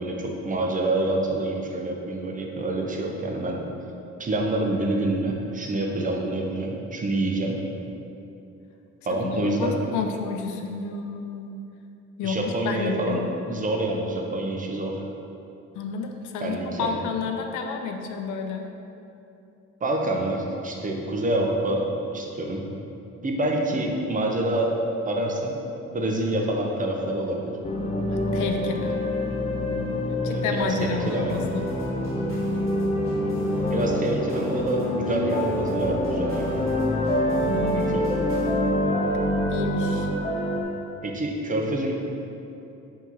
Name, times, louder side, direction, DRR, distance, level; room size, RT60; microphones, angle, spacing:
voice 1, 0.0-3.6 4.2-7.6 9.0-9.8 12.2-13.2 13.5-15.0 16.4-17.0 19.8-21.9 22.1-22.7 23.2-24.7 25.1-25.6 25.9-27.5 30.3-31.4 33.7-36.5 37.7-38.3 41.0-41.9, right 1 dB, 25° right, 0 dB, 0.6 m, -27 dB
voice 2, 9.2-11.6 12.2-12.4 12.6-13.3 15.7-18.7 28.3-29.0 30.2-31.7 37.4-38.0 39.5-40.1, left 5 dB, 80° left, 4 dB, 0.5 m, -30 dB
sound 1, 27.6-40.6, left 1 dB, 20° left, 0.5 m, -26 dB
sound 2, 30.5-38.5, right 1 dB, 45° left, 1.3 m, -42 dB
4.7 x 2.9 x 3.9 m, 2.8 s
cardioid pair, 90°, 30 cm